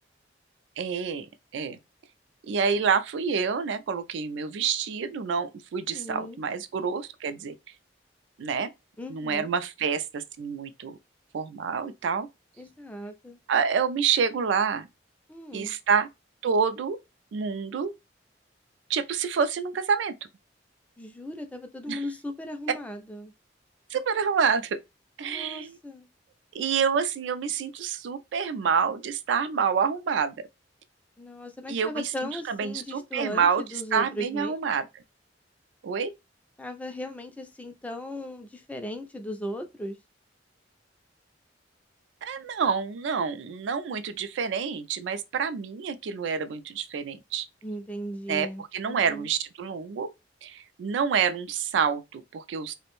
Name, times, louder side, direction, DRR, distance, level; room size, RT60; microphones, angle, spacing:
voice 1, 0.8-1.3 1.5-1.8 2.5-7.5 8.4-8.7 9.1-11.0 11.3-12.3 13.5-14.9 15.5-16.1 16.4-17.0 17.3-17.9 18.9-20.1 21.9-22.0 23.9-24.8 25.2-25.8 26.5-30.3 31.7-32.0 32.5-33.6 33.9-34.9 35.8-36.1 42.2-47.5 48.3-50.1 50.4-52.7, right 6 dB, 70° right, 0.3 m, -27 dB
voice 2, 5.9-6.4 9.0-9.5 12.6-13.4 15.3-15.7 21.0-23.3 25.2-26.1 31.2-34.6 36.6-40.0 47.6-49.3, equal, 10° left, 0.3 m, -37 dB
2.5 x 2.1 x 2.9 m
head